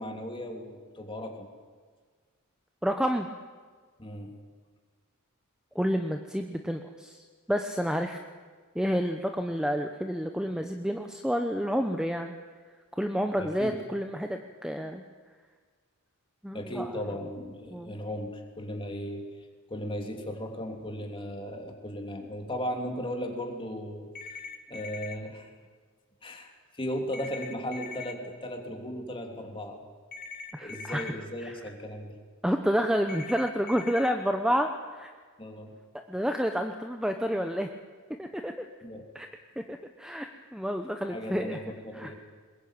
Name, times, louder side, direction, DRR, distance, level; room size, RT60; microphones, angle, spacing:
voice 1, 0.0-1.5 4.0-4.3 13.4-13.7 16.5-19.2 19.7-24.1 24.7-25.5 26.2-29.9 30.6-32.2 35.4-35.7 38.8-39.0 41.1-42.2, equal, 25° left, 3 dB, 2.9 m, -36 dB
voice 2, 2.8-3.3 5.7-8.2 8.7-12.3 12.9-15.0 16.4-16.9 17.7-18.0 30.5-31.1 31.4-31.6 32.4-35.1 36.1-37.7 38.2-38.7 39.1-39.3 39.7-41.6 41.9-42.1, equal, 5° right, 5 dB, 0.8 m, -29 dB
sound 1, 24.2-25.2 27.1-28.1 30.1-31.1 33.1-34.1, left 4 dB, 45° left, 2.1 m, -41 dB
21.5 x 21.0 x 8.9 m, 1.5 s
head